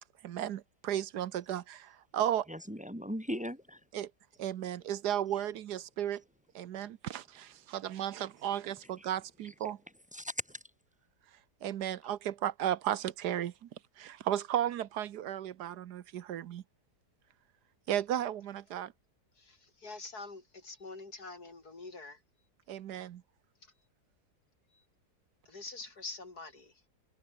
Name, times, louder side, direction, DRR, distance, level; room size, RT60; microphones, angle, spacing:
voice 1, 0.2-2.5 3.9-4.1 4.4-6.2 6.5-9.8 11.6-13.7 14.0-16.6 17.9-18.9 22.7-23.2, right 11 dB, 75° right, 1.4 m, -34 dB
voice 2, 2.5-3.8 9.0-9.1 9.4-9.5 10.1-10.6, equal, 5° right, 1.4 m, -38 dB
voice 3, 19.4-22.2 23.6-23.7 24.7-24.8 25.4-26.7, left 3 dB, 65° left, 4.9 m, -46 dB
omnidirectional pair, 1.8 m